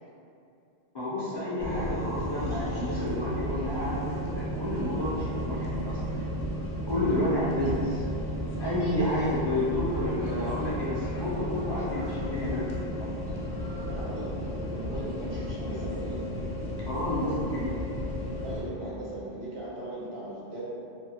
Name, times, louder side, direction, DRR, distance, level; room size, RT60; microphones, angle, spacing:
voice 1, 0.9-6.0 6.9-8.0 8.6-13.1 16.9-17.7, left 1 dB, 35° left, -10 dB, 0.4 m, -30 dB
sound 1, 1.6-18.6, equal, 65° left, 0.7 m, -33 dB
voice 2, 13.7-16.3 18.4-20.6, right 1 dB, 85° right, -7 dB, 1.1 m, -38 dB
2.7 x 2.3 x 2.7 m, 2.5 s
omnidirectional pair, 1.0 m